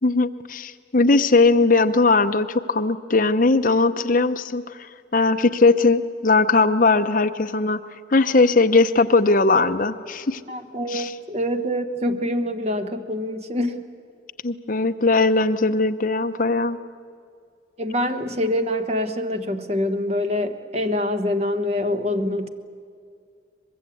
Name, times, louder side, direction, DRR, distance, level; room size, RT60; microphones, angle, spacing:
voice 1, 0.0-4.6 5.1-7.8 8.1-10.4 10.9-11.1 14.4-16.8, left 3 dB, 45° left, 8 dB, 0.8 m, -19 dB
voice 2, 10.5-13.8 17.8-22.5, left 1 dB, 35° right, 7 dB, 1.2 m, -25 dB
24.0 x 21.5 x 8.5 m, 2.3 s
head